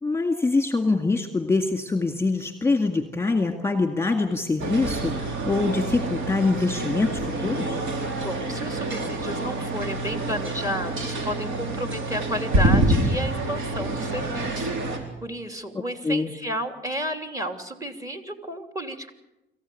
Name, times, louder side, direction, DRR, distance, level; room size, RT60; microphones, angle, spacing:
voice 1, 0.0-7.8 16.0-16.3, left 3 dB, 10° left, 6 dB, 1.9 m, -24 dB
sound 1, 4.6-15.0, right 1 dB, 80° right, 4.4 m, -27 dB
voice 2, 8.2-19.1, equal, 15° right, 6 dB, 2.9 m, -32 dB
26.0 x 15.0 x 8.6 m, 0.96 s
cardioid pair, 90°, 20 cm